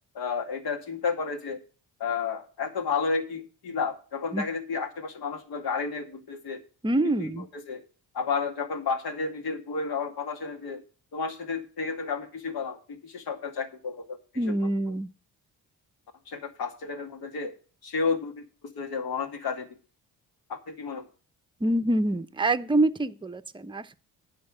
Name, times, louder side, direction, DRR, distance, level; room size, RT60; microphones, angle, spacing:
voice 1, 0.1-1.6 2.0-6.6 7.0-7.8 8.1-10.8 11.1-14.5 16.3-17.5 17.8-18.4 18.7-19.7 20.5-21.0, left 5 dB, 65° left, 2.3 m, -31 dB
voice 2, 6.8-7.4 14.4-15.1 21.6-24.0, right 1 dB, 10° right, 0.7 m, -26 dB
9.5 x 5.8 x 7.4 m
supercardioid pair, 70°, 39 cm